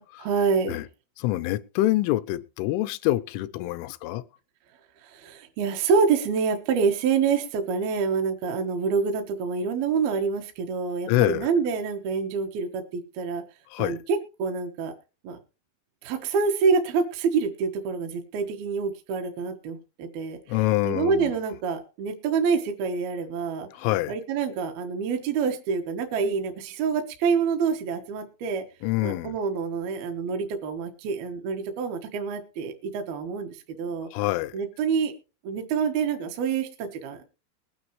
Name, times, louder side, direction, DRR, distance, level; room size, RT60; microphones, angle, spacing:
voice 1, 0.2-0.8 5.0-13.4 13.8-14.9 15.2-15.4 16.0-20.4 20.8-23.7 24.1-28.6 29.0-34.1 34.5-35.1 35.4-37.3, right 5 dB, 65° right, 2.8 m, -27 dB
voice 2, 1.2-4.2 11.1-11.5 13.7-14.0 20.5-21.4 23.7-24.1 28.8-29.4 34.1-34.5, left 16 dB, 90° left, 3.2 m, -26 dB
21.0 x 9.5 x 3.1 m
omnidirectional pair, 5.4 m